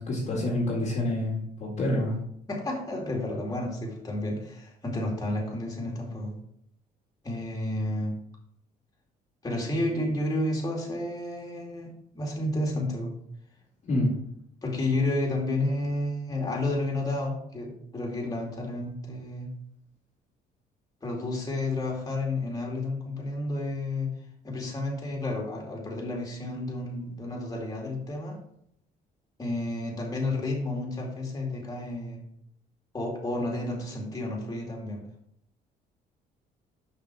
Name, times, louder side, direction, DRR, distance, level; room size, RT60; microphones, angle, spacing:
voice 1, 0.1-2.2 13.8-14.1, left 1 dB, 40° left, -2 dB, 2.0 m, -27 dB
voice 2, 2.5-6.4 7.2-8.1 9.4-13.1 14.6-19.5 21.0-24.1 24.4-28.3 29.4-32.2 32.9-35.0, left 2 dB, 20° left, -2 dB, 2.4 m, -31 dB
5.9 x 5.5 x 4.7 m, 0.71 s
cardioid pair, 110°, 17 cm